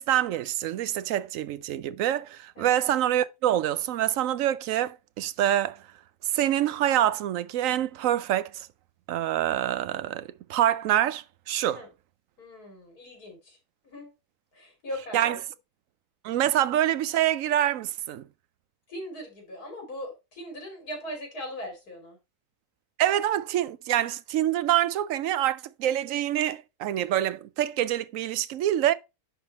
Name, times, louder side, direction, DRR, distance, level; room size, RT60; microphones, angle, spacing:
voice 1, 0.0-5.8 6.2-8.7 9.1-11.8 15.1-15.4 16.2-18.2 23.0-28.9, right 12 dB, 70° right, 0.9 m, -26 dB
voice 2, 12.4-13.6 13.8-14.1 14.5-15.2 18.9-22.2, equal, 80° left, 3.3 m, -39 dB
10.5 x 3.8 x 4.1 m
omnidirectional pair, 1.6 m